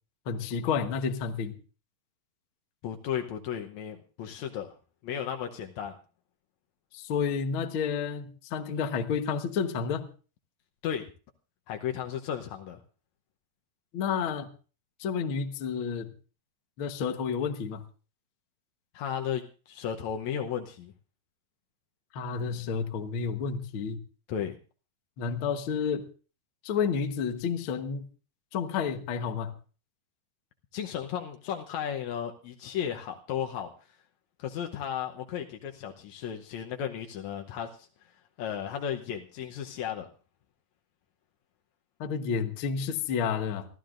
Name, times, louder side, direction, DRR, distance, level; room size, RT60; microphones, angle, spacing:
voice 1, 0.3-1.5 6.9-10.1 13.9-14.5 15.0-16.1 16.8-17.8 22.1-24.0 25.2-26.0 26.6-28.0 28.5-29.5 42.0-43.7, left 6 dB, 90° left, 7 dB, 1.1 m, -30 dB
voice 2, 2.8-4.8 5.0-5.9 10.8-11.0 11.7-12.8 18.9-20.9 24.3-24.6 30.7-33.7 34.4-37.9 38.4-40.1, left 9 dB, 70° left, 3 dB, 1.7 m, -34 dB
28.5 x 12.5 x 2.5 m, 0.37 s
omnidirectional pair, 4.4 m